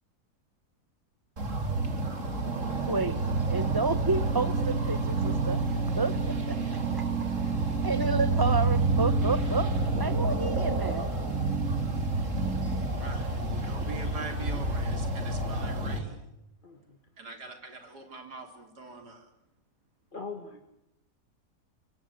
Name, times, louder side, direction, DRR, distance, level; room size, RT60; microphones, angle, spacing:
sound 1, 1.4-16.0, right 3 dB, 50° right, 3.4 m, -28 dB
voice 1, 2.9-3.2 3.5-7.0 7.8-9.7 10.0-11.1, right 3 dB, 15° right, 15 dB, 1.0 m, -30 dB
voice 2, 13.0-16.2 17.2-19.3, right 3 dB, 80° right, 6 dB, 4.5 m, -43 dB
voice 3, 16.6-17.0 20.1-20.6, left 4 dB, 30° left, 6 dB, 2.0 m, -41 dB
25.5 x 23.0 x 8.4 m, 0.85 s
omnidirectional pair, 1.7 m